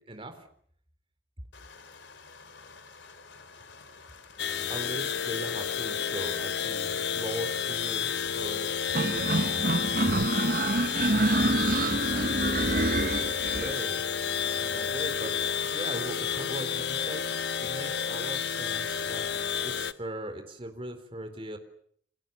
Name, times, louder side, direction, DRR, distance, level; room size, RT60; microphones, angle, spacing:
voice 1, 0.1-0.5 4.7-9.7 12.4-12.9 13.2-14.0 14.5-19.2 19.6-21.6, right 1 dB, 30° right, 6 dB, 4.1 m, -39 dB
sound 1, 1.5-19.3, left 4 dB, 85° left, 3.4 m, -52 dB
sound 2, 4.4-19.9, left 7 dB, 65° left, 1.2 m, -31 dB
sound 3, 8.9-13.8, right 2 dB, 50° right, 1.1 m, -27 dB
29.5 x 26.5 x 7.2 m, 0.65 s
head